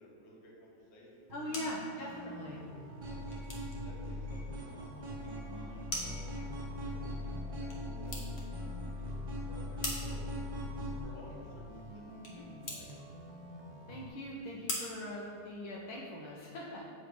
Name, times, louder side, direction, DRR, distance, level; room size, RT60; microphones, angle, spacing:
voice 1, 0.0-1.6 3.0-9.1 9.5-12.9, left 1 dB, 60° left, -3 dB, 1.6 m, -56 dB
sound 1, 1.1-16.0, left 1 dB, 45° left, 0.9 m, -46 dB
voice 2, 1.3-2.6 13.9-16.9, left 1 dB, 75° left, -3 dB, 1.5 m, -41 dB
sound 2, 1.3-14.1, right 1 dB, 70° right, 1.2 m, -50 dB
sound 3, 3.0-11.0, left 1 dB, 40° right, 0.6 m, -40 dB
7.9 x 3.2 x 5.0 m, 2.6 s
omnidirectional pair, 2.3 m